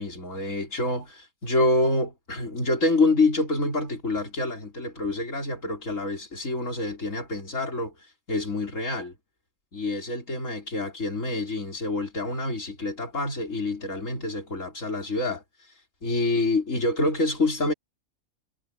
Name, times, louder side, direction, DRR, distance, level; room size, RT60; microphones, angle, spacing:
voice 1, 0.0-7.9 8.3-9.1 9.7-15.4 16.0-17.7, left 2 dB, 70° left, 5.4 m, -27 dB
omnidirectional pair, 1.4 m